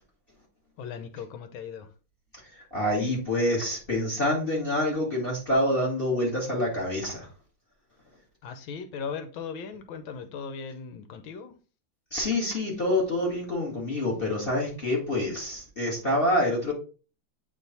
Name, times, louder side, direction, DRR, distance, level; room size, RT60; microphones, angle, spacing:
voice 1, 0.8-1.9 8.4-11.5, left 6 dB, 90° left, 1.6 m, -38 dB
voice 2, 2.5-7.3 12.1-16.7, left 1 dB, 30° left, 1.9 m, -27 dB
8.5 x 3.2 x 4.1 m
omnidirectional pair, 2.2 m